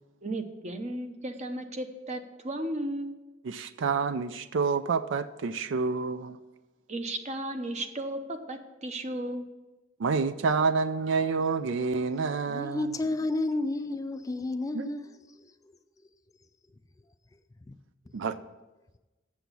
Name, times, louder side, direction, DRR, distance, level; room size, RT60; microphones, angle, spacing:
voice 1, 0.2-3.2 6.9-9.4, right 1 dB, 35° right, 7 dB, 0.8 m, -35 dB
voice 2, 3.5-6.4 10.0-12.8 14.7-14.9 18.1-18.4, right 4 dB, 65° right, 13 dB, 0.4 m, -28 dB
voice 3, 12.5-15.6 16.0-16.1 17.7-17.8, left 2 dB, 15° left, 10 dB, 0.3 m, -32 dB
7.7 x 7.0 x 6.8 m, 1.1 s
head